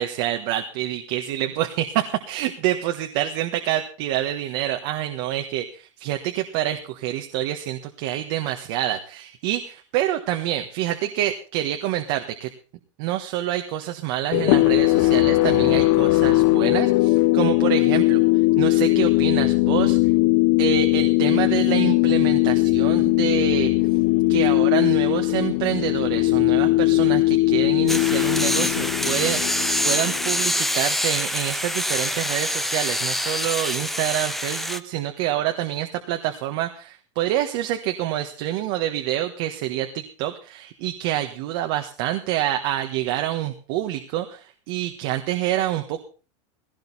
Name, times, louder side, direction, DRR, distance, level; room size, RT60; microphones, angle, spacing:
voice 1, 0.0-12.5 13.0-18.2 18.6-20.0 20.6-23.7 24.3-46.0, right 12 dB, 55° right, 5 dB, 1.5 m, -27 dB
sound 1, 14.3-30.6, left 20 dB, 55° left, 0.7 m, -19 dB
sound 2, 27.9-34.8, left 1 dB, ahead, 0.7 m, -25 dB
17.0 x 16.5 x 4.2 m, 0.37 s
supercardioid pair, 150°, 16 cm